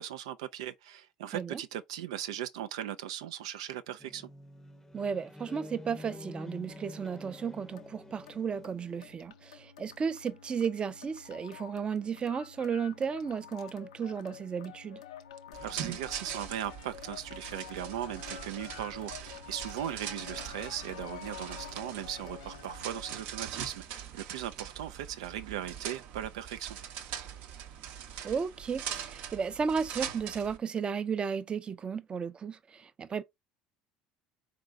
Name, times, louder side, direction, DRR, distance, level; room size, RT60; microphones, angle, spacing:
voice 1, 0.0-4.3 15.6-26.8, right 11 dB, 80° right, 0.3 m, -38 dB
sound 1, 4.0-9.2, left 1 dB, 15° left, 0.6 m, -48 dB
voice 2, 4.9-15.0 28.2-33.2, right 6 dB, 35° right, 0.5 m, -34 dB
sound 2, 5.9-23.2, left 9 dB, 85° left, 0.5 m, -49 dB
sound 3, 15.5-30.6, right 9 dB, 65° right, 0.7 m, -42 dB
4.0 x 3.2 x 3.7 m
hypercardioid pair, 75°, 3 cm